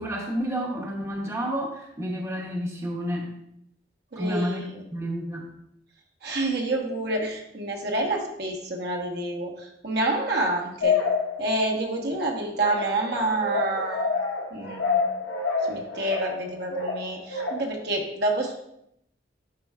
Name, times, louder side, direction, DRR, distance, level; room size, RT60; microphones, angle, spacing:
voice 1, 0.0-3.3 4.2-5.5, equal, 15° right, -1 dB, 0.9 m, -30 dB
voice 2, 4.1-4.8 6.2-11.0 11.4-14.1 14.5-15.0 15.7-18.6, right 2 dB, 65° right, 0 dB, 1.2 m, -28 dB
sound 1, 10.8-11.9 12.6-17.9, left 4 dB, 80° left, 1.3 m, -28 dB
11.0 x 4.5 x 2.4 m, 0.76 s
head